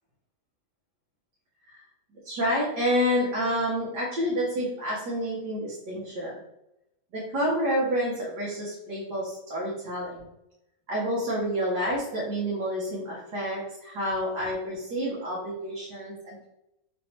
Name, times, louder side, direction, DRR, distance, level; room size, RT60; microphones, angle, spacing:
voice 1, 2.2-6.3 7.1-10.3 10.9-16.5, equal, 90° right, -6 dB, 1.5 m, -29 dB
3.3 x 3.3 x 2.8 m, 0.87 s
omnidirectional pair, 1.7 m